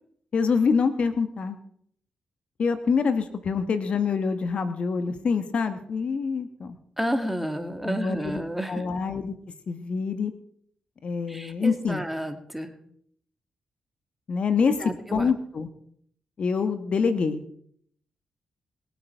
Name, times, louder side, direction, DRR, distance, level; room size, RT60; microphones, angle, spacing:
voice 1, 0.3-1.6 2.6-6.8 7.8-8.4 8.7-9.3 9.7-10.3 11.0-12.0 14.3-14.8 15.1-15.7 16.4-17.4, left 5 dB, 60° left, 10 dB, 1.3 m, -25 dB
voice 2, 7.0-8.9 11.3-12.7 14.8-15.3, equal, 5° right, 7 dB, 2.2 m, -31 dB
21.0 x 8.1 x 4.6 m, 0.65 s
supercardioid pair, 50°, 2 cm